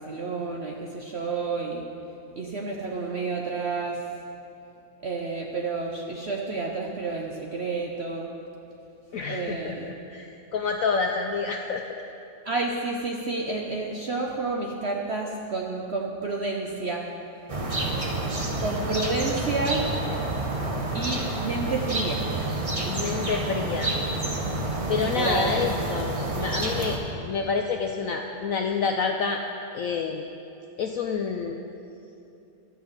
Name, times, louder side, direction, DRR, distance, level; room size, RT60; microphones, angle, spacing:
voice 1, 0.0-1.8 2.4-4.1 5.0-8.3 9.3-9.9 12.4-17.1 18.6-19.9 20.9-22.6 22.8-22.9 23.3-23.5 25.0-25.7, right 3 dB, 55° right, 0 dB, 0.7 m, -30 dB
voice 2, 9.1-12.0 22.9-23.9 24.9-27.0 27.3-29.4 29.7-30.2 30.8-31.6, left 5 dB, 70° left, 4 dB, 0.8 m, -28 dB
sound 1, 17.5-27.0, right 2 dB, 25° right, 0.8 m, -29 dB
12.0 x 5.8 x 8.7 m, 2.8 s
omnidirectional pair, 2.0 m